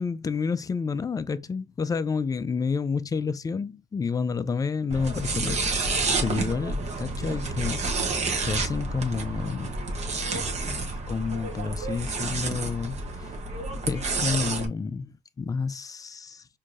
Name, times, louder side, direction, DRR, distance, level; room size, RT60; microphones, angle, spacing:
voice 1, 0.0-9.8 10.8-13.3 13.9-16.5, left 5 dB, 20° left, 0.4 m, -30 dB
sound 1, 4.9-14.7, right 3 dB, 40° right, 0.9 m, -29 dB
4.6 x 2.7 x 2.5 m
cardioid pair, 110°, 17 cm